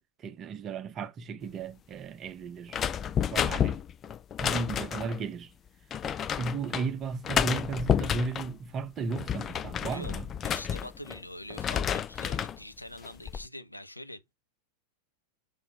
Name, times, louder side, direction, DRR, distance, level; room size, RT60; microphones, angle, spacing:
voice 1, 0.0-2.8 3.2-3.8 4.4-5.5 6.3-10.3, right 4 dB, 30° right, 1.0 m, -35 dB
sound 1, 2.7-5.2 5.9-6.9 7.2-8.5 9.0-11.2 11.5-12.6 13.0-13.4, left 8 dB, 25° left, 0.5 m, -30 dB
voice 2, 10.4-14.3, left 1 dB, 85° left, 0.8 m, -44 dB
6.3 x 5.4 x 3.6 m
figure-of-eight pair, 90°, 0 cm